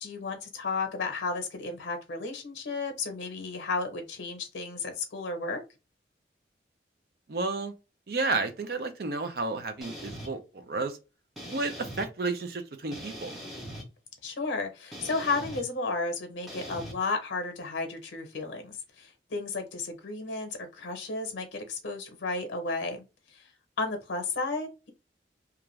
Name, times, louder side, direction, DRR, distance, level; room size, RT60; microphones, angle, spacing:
voice 1, 0.0-5.6 14.2-23.0 23.3-23.5 23.8-24.9, left 3 dB, 85° left, 0.7 m, -33 dB
voice 2, 7.3-7.7 8.1-11.0 11.5-13.3, right 3 dB, 55° right, 0.5 m, -31 dB
sound 1, 9.8-10.3 11.4-12.1 12.9-13.9 14.9-15.6 16.5-16.9, equal, ahead, 0.7 m, -41 dB
2.5 x 2.3 x 3.0 m
head